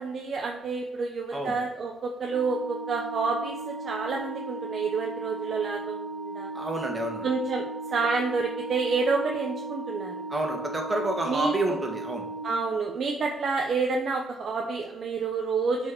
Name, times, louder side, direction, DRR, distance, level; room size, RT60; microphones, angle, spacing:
voice 1, 0.0-6.5 7.2-7.6 7.9-10.1 11.3-11.5 12.4-15.9, right 4 dB, 55° right, 2 dB, 0.9 m, -29 dB
Organ, 2.3-13.1, right 2 dB, 75° right, 1.2 m, -37 dB
voice 2, 6.5-7.3 10.3-12.3, right 1 dB, 20° right, 2 dB, 1.9 m, -29 dB
7.5 x 4.6 x 6.1 m, 0.89 s
cardioid pair, 90°, 0 cm